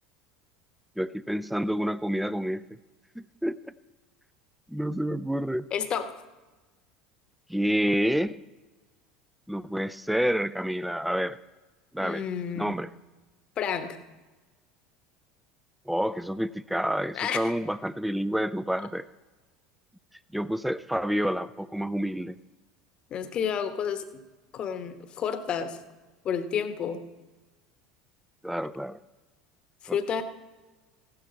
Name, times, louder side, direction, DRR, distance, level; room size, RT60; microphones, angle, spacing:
voice 1, 1.0-2.6 3.2-3.7 4.7-5.7 7.5-8.4 9.5-11.4 11.9-12.2 12.6-12.9 15.9-19.1 20.3-22.4 28.4-29.0 29.9-30.0, equal, ahead, 17 dB, 0.5 m, -28 dB
voice 2, 5.7-6.1 12.0-12.7 13.6-14.0 17.1-17.5 23.1-24.2 24.5-25.8 26.2-27.0 29.8-30.2, left 7 dB, 40° left, 10 dB, 1.1 m, -30 dB
15.5 x 12.0 x 4.2 m, 1.2 s
figure-of-eight pair, 70°, 2 cm